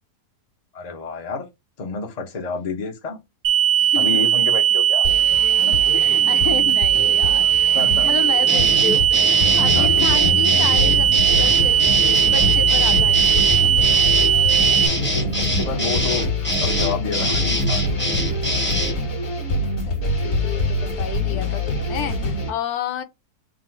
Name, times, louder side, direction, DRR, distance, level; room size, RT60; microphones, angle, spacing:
voice 1, 0.7-1.4 1.8-3.2 3.9-5.1 5.5-5.8 7.3-7.5 7.7-8.1 9.7-10.2 15.1-16.3 16.6-17.9, left 4 dB, 40° left, 0.6 m, -29 dB
sound 1, 3.4-14.9, right 10 dB, 65° right, 0.9 m, -18 dB
voice 2, 3.8-4.3 5.9-9.0 9.4-13.5 19.9-23.0, left 7 dB, 75° left, 1.1 m, -31 dB
sound 2, 5.0-22.5, left 2 dB, 55° left, 1.6 m, -25 dB
sound 3, 8.5-19.0, equal, 10° left, 0.8 m, -24 dB
3.8 x 2.0 x 4.4 m
omnidirectional pair, 1.7 m